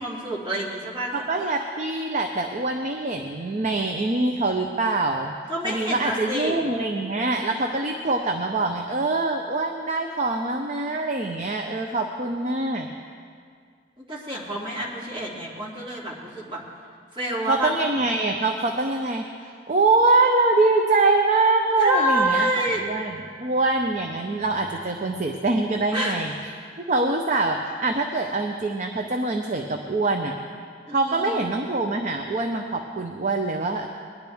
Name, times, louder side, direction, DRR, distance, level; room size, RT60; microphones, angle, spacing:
voice 1, 0.0-1.2 5.5-6.6 14.1-16.6 17.1-17.7 21.8-22.8 25.9-26.2 30.9-31.5, right 1 dB, 25° right, -5 dB, 2.6 m, -27 dB
voice 2, 1.1-5.3 5.6-12.9 17.5-26.3 26.9-30.3 30.9-33.9, right 3 dB, 40° right, 3 dB, 0.7 m, -24 dB
20.0 x 11.0 x 3.5 m, 2.1 s
head